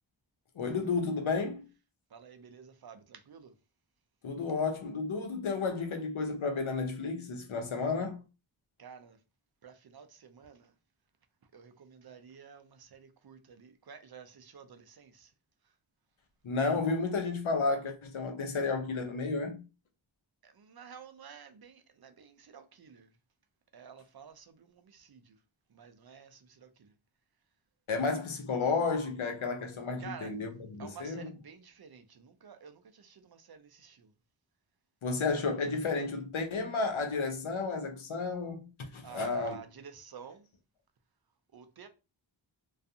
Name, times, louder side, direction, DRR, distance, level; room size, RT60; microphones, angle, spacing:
voice 1, 0.6-1.7 4.2-8.2 16.4-19.6 27.9-31.3 35.0-39.6, left 4 dB, 80° left, 0.7 m, -32 dB
voice 2, 2.1-3.5 8.8-9.2 9.6-10.7 11.5-15.3 20.4-23.1 23.7-25.4 25.7-26.9 30.0-30.3 30.8-34.1 39.0-40.4 41.5-41.9, right 7 dB, 55° right, 0.5 m, -51 dB
2.4 x 2.3 x 2.6 m
wide cardioid pair, 45°, 48 cm